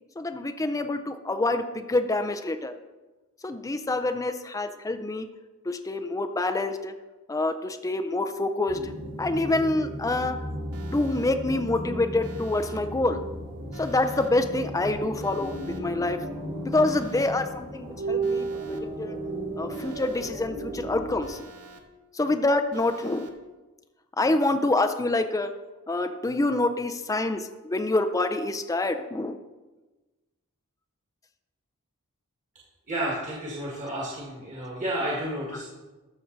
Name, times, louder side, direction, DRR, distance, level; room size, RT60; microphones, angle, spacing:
voice 1, 0.2-2.7 3.4-5.3 5.7-6.9 7.3-8.9 9.2-10.4 10.9-13.2 13.7-16.2 16.7-19.2 19.6-21.5 22.1-23.3 24.2-25.5 25.9-29.4, left 2 dB, 15° left, 8 dB, 0.4 m, -26 dB
sound 1, 8.7-21.2, right 2 dB, 65° right, 3.5 m, -34 dB
Alarm, 10.7-11.3 12.2-12.8 13.7-14.3 15.2-15.8 16.7-17.3 18.2-18.8 19.7-20.3 21.2-21.8 22.7-23.3, right 3 dB, 80° right, 1.1 m, -48 dB
voice 2, 32.9-35.6, right 1 dB, 35° right, -5 dB, 1.8 m, -31 dB
14.0 x 6.3 x 4.0 m, 1.2 s
head